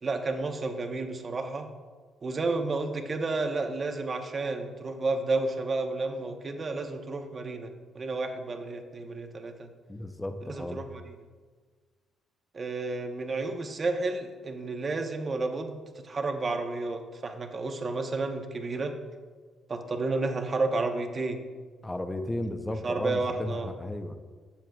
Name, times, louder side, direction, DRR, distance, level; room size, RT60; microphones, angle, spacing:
voice 1, 0.0-1.7 2.2-7.7 7.9-9.7 10.4-11.1 12.5-15.8 16.0-18.9 19.7-21.4 22.8-23.7, right 3 dB, 40° right, 5 dB, 0.9 m, -31 dB
voice 2, 9.9-10.9 21.8-24.2, left 1 dB, 15° left, 7 dB, 0.7 m, -34 dB
12.5 x 7.5 x 2.3 m, 1.5 s
cardioid pair, 90°, 0 cm